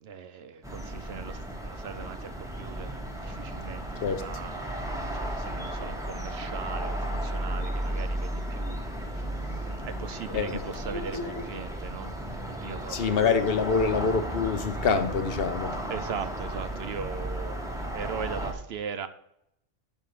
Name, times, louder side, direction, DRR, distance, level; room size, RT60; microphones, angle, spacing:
voice 1, 0.0-8.8 9.1-9.3 9.8-13.2 15.9-19.1, right 7 dB, 65° right, 0.8 m, -39 dB
sound 1, 0.6-18.5, right 1 dB, 5° right, 0.9 m, -34 dB
sound 2, 8.2-8.8 9.0-9.2 9.5-9.6 9.9-11.4, left 2 dB, 75° left, 1.8 m, -44 dB
voice 2, 10.3-10.6 12.9-15.8, left 5 dB, 55° left, 0.9 m, -26 dB
5.6 x 5.3 x 6.5 m
omnidirectional pair, 1.2 m